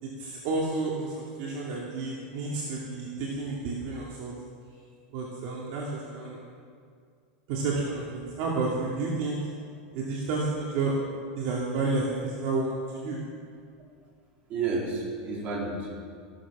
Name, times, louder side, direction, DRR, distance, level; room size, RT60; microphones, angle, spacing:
voice 1, 0.0-4.3 5.1-6.4 7.5-9.5 9.9-10.9 11.3-13.2, right 3 dB, 50° right, -3 dB, 2.6 m, -31 dB
voice 2, 14.5-16.0, right 4 dB, 35° right, -3 dB, 4.1 m, -31 dB
15.0 x 13.0 x 6.2 m, 2.2 s
supercardioid pair, 160°, 5 cm